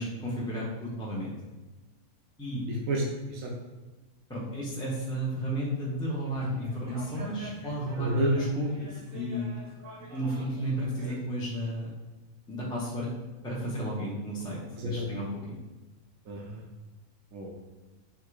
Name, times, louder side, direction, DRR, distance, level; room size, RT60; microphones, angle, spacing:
voice 1, 0.0-1.3 2.4-2.6 4.3-9.5 10.1-11.9 12.5-13.1 13.4-15.6, equal, 5° left, -6 dB, 0.5 m, -33 dB
voice 2, 2.7-3.0 3.3-3.5 8.0-8.3 11.0-11.1 14.8-15.1 16.3-16.6 17.3-17.5, right 1 dB, 70° right, -2 dB, 1.0 m, -31 dB
sound 1, 6.2-11.2, right 1 dB, 45° right, 0.9 m, -46 dB
3.6 x 2.8 x 4.6 m, 1.2 s
omnidirectional pair, 1.5 m